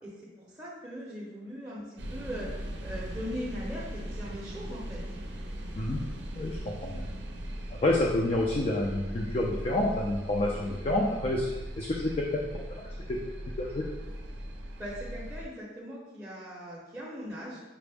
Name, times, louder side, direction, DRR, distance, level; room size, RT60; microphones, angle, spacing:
voice 1, 0.0-2.5 2.8-5.0 10.5-10.7 14.8-17.6, equal, 10° right, -8 dB, 0.6 m, -40 dB
sound 1, 2.0-15.4, equal, 80° right, 0.5 m, -39 dB
voice 2, 6.3-7.0 7.8-11.5 11.8-12.1 12.5-12.6 13.1-13.2 13.6-13.9, left 1 dB, 35° left, -2 dB, 0.4 m, -28 dB
5.8 x 2.0 x 3.4 m, 1.1 s
head